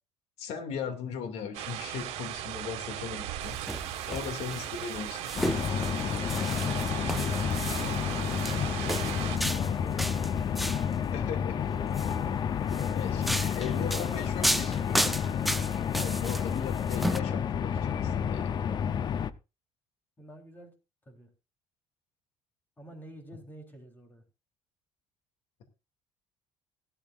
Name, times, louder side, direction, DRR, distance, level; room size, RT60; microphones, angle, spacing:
voice 1, 0.4-3.6 4.1-5.3 11.1-11.6 12.9-15.2 15.9-18.6, left 7 dB, 75° left, 6 dB, 2.4 m, -38 dB
sound 1, 1.5-9.4, right 12 dB, 80° right, 1.8 m, -37 dB
sound 2, 3.4-10.9 11.8-12.2 12.7-17.2, equal, ahead, 0.7 m, -34 dB
voice 2, 4.1-4.4 6.5-6.9 7.9-11.2 12.7-12.9 13.6-14.8 20.2-20.7 21.1-21.3 22.8-24.2, right 1 dB, 15° left, 4 dB, 3.6 m, -49 dB
sound 3, 5.4-19.3, left 8 dB, 40° left, 0.7 m, -30 dB
17.0 x 12.5 x 2.5 m, 0.28 s
cardioid pair, 130°, 11 cm